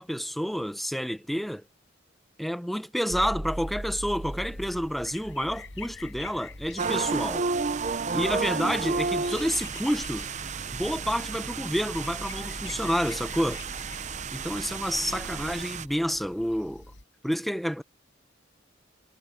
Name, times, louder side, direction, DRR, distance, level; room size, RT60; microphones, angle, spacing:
voice 1, 0.0-1.6 2.4-7.5 8.1-10.3 10.7-13.6 14.3-16.9 17.2-17.8, equal, ahead, 0.8 m, -29 dB
sound 1, 3.1-15.6, equal, 80° right, 4.1 m, -42 dB
sound 2, 3.6-17.0, left 4 dB, 65° left, 5.7 m, -48 dB
sound 3, 6.8-15.9, right 5 dB, 35° right, 0.6 m, -32 dB
head